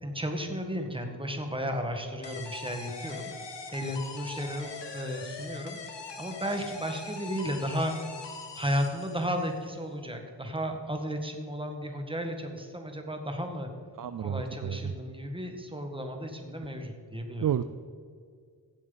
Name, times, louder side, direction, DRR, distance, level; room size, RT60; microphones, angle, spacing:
voice 1, 0.0-3.3 3.7-5.8 6.2-7.9 8.5-13.7 14.2-17.4, equal, 10° right, 4 dB, 1.7 m, -34 dB
sound 1, 2.2-9.6, left 4 dB, 80° left, 1.3 m, -42 dB
voice 2, 14.0-14.9 17.4-17.6, right 9 dB, 50° right, 12 dB, 0.5 m, -30 dB
16.5 x 7.6 x 4.0 m, 2.1 s
wide cardioid pair, 60°, 42 cm